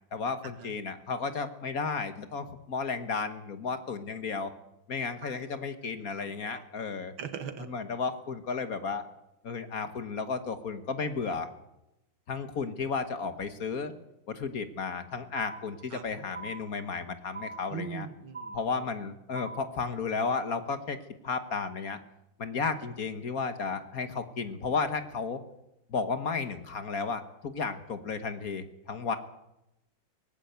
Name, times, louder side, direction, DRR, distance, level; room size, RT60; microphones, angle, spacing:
voice 1, 0.1-4.5 4.9-7.1 7.6-9.0 9.4-11.5 12.3-13.9 14.3-18.1 18.5-21.0 21.2-22.0 22.4-25.4 25.9-29.2, left 5 dB, 50° left, 10 dB, 1.6 m, -33 dB
voice 2, 6.2-6.6 7.2-7.7 15.9-16.0 17.7-18.6, right 7 dB, 80° right, 9 dB, 2.5 m, -40 dB
sound 1, 15.3-16.0 16.3-17.0 17.3-18.0 18.3-19.0 19.3-20.0, right 3 dB, 20° right, 1.4 m, -43 dB
19.0 x 15.5 x 9.4 m, 0.88 s
omnidirectional pair, 2.2 m